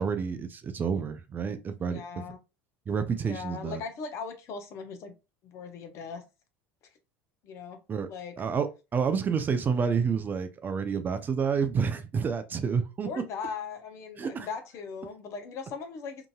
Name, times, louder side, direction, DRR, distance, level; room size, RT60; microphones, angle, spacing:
voice 1, 0.0-2.0 2.9-3.8 7.9-8.1 8.4-13.1 14.2-14.5, right 6 dB, 30° right, 0.4 m, -29 dB
voice 2, 1.8-2.4 3.2-5.1 5.4-6.2 7.4-7.8 8.1-8.3 13.0-16.3, left 5 dB, 50° left, 0.7 m, -39 dB
2.8 x 2.5 x 2.3 m
hypercardioid pair, 85°, 6 cm